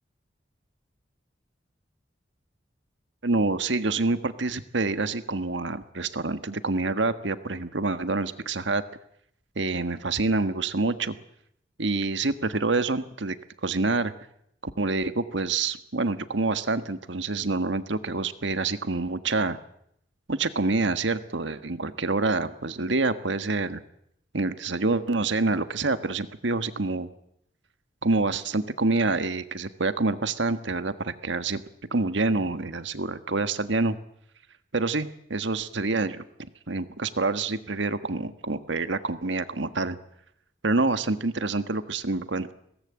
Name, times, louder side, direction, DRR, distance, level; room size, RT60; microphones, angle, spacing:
voice 1, 3.2-8.8 9.5-11.1 11.8-13.3 13.6-14.1 14.6-19.6 20.3-23.8 24.3-27.1 28.0-31.6 31.9-34.0 34.7-36.2 36.7-40.0 40.6-42.5, right 3 dB, 75° right, 11 dB, 1.5 m, -27 dB
22.5 x 18.0 x 8.8 m, 0.74 s
head